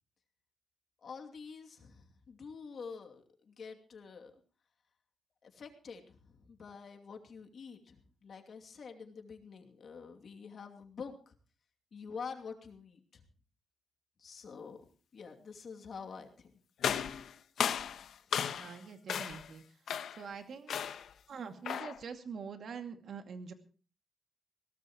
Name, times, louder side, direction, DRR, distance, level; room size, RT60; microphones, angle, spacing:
voice 1, 1.0-4.4 5.4-11.4 11.9-13.2 14.2-14.8 15.1-16.5 18.2-18.3, left 5 dB, 55° left, 3 dB, 2.6 m, -47 dB
sound 1, 16.8-18.8 19.1-19.5 19.9-20.3 20.7-21.1 21.6-22.0, left 8 dB, 75° left, 1.0 m, -35 dB
voice 2, 18.5-19.6 20.2-20.8 21.3-23.5, right 6 dB, 60° right, 6 dB, 2.3 m, -44 dB
21.0 x 17.5 x 3.1 m, 0.36 s
cardioid pair, 120°, 0 cm